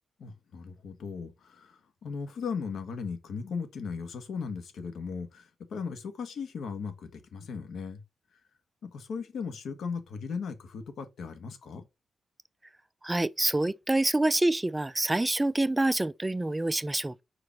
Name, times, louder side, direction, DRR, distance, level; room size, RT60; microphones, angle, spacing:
voice 1, 0.2-8.0 8.8-11.8, left 5 dB, 80° left, 1.5 m, -37 dB
voice 2, 13.0-17.2, right 2 dB, 10° right, 0.3 m, -26 dB
5.0 x 4.9 x 5.8 m
wide cardioid pair, 155°, 0 cm